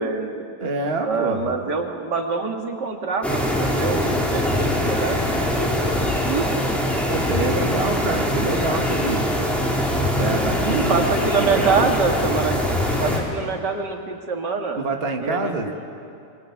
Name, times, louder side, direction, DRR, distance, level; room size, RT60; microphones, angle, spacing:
voice 1, 0.0-0.4 1.0-6.6 10.6-12.6 13.0-14.8 15.2-15.8, right 4 dB, 90° right, 3 dB, 2.8 m, -25 dB
voice 2, 0.6-1.5 7.1-9.3 10.2-11.9 14.8-15.7, right 3 dB, 35° right, 3 dB, 1.9 m, -26 dB
sound 1, 3.2-13.2, left 1 dB, ahead, 3.8 m, -22 dB
25.0 x 22.0 x 9.6 m, 2.5 s
omnidirectional pair, 1.8 m